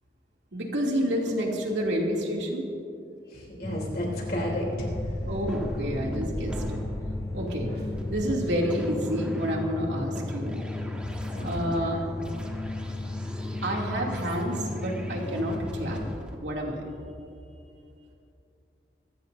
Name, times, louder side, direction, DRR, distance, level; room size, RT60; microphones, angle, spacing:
voice 1, 0.5-2.6 5.2-6.8 7.3-7.7 8.1-10.6 11.4-12.0 13.6-16.0 16.4-16.8, equal, 85° right, -1 dB, 2.6 m, -29 dB
voice 2, 3.3-4.7 11.3-11.7, equal, 55° left, -3 dB, 3.2 m, -33 dB
sound 1, 3.6-16.2, left 2 dB, 20° left, 0.3 m, -35 dB
sound 2, 3.9-8.1, equal, 65° right, 1.6 m, -42 dB
sound 3, 4.7-16.3, equal, 5° right, 1.3 m, -41 dB
26.0 x 14.5 x 2.7 m, 2.7 s
head